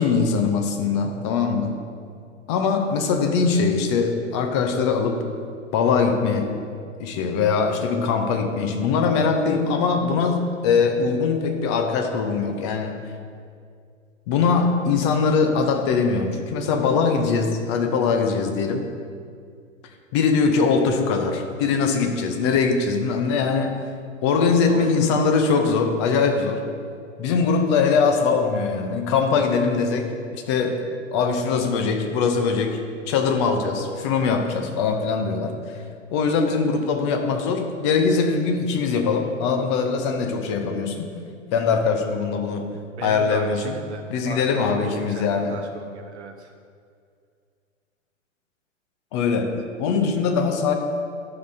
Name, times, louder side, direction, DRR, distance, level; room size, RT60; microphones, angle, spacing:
voice 1, 0.0-1.7 2.5-5.2 5.7-6.5 7.0-13.0 14.3-18.9 20.1-23.8 24.2-26.7 27.2-32.8 33.1-35.8 36.1-41.1 41.5-42.7 43.0-43.8 44.1-45.6 49.1-50.7, left 5 dB, 25° left, 5 dB, 0.5 m, -22 dB
voice 2, 24.7-25.0 43.0-46.5, right 6 dB, 60° right, 6 dB, 0.5 m, -36 dB
11.5 x 5.6 x 2.6 m, 2.3 s
figure-of-eight pair, 115°, 38 cm